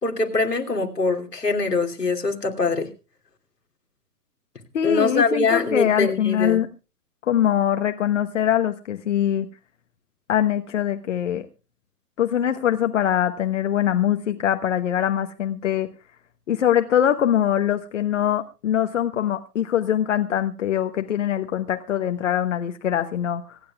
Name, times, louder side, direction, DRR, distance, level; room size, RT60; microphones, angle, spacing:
voice 1, 0.0-2.9 4.8-6.6, left 3 dB, 85° left, 3 dB, 2.9 m, -23 dB
voice 2, 4.7-6.7 7.3-9.5 10.3-11.5 12.2-15.9 16.5-23.6, left 10 dB, 50° left, 7 dB, 1.2 m, -23 dB
25.0 x 10.5 x 2.3 m, 0.32 s
figure-of-eight pair, 125°, 47 cm